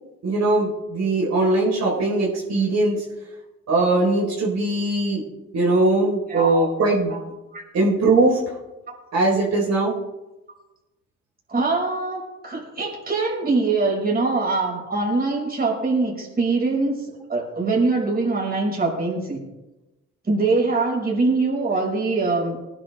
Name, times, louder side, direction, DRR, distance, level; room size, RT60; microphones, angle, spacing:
voice 1, 0.2-3.0 3.7-5.2 5.5-7.2 7.7-8.4 9.1-9.9, right 2 dB, 60° right, -5 dB, 4.9 m, -20 dB
voice 2, 6.3-6.7 7.1-7.2 7.5-7.6 11.5-17.0 17.3-19.4 20.2-22.6, right 3 dB, 30° right, -3 dB, 6.0 m, -23 dB
20.0 x 11.0 x 3.7 m, 1.0 s
cardioid pair, 90°, 30 cm